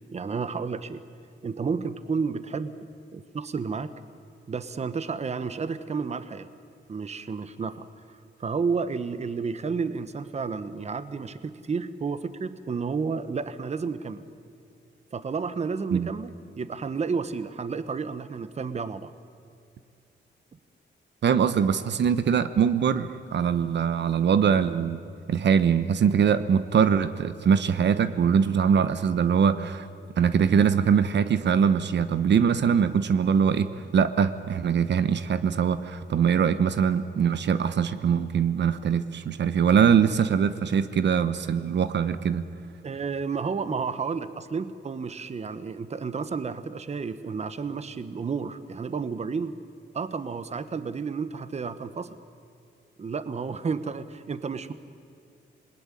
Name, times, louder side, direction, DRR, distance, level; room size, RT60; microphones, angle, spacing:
voice 1, 0.1-1.0 1.4-2.7 3.1-3.9 4.5-6.5 6.9-7.9 8.4-14.2 15.1-19.1 42.8-49.6 49.9-52.2 53.0-54.7, right 5 dB, 35° right, 12 dB, 1.1 m, -31 dB
voice 2, 21.2-25.0 25.3-29.9 30.2-42.4, right 7 dB, 65° right, 12 dB, 1.0 m, -22 dB
27.0 x 20.5 x 9.9 m, 2.4 s
wide cardioid pair, 145°, 19 cm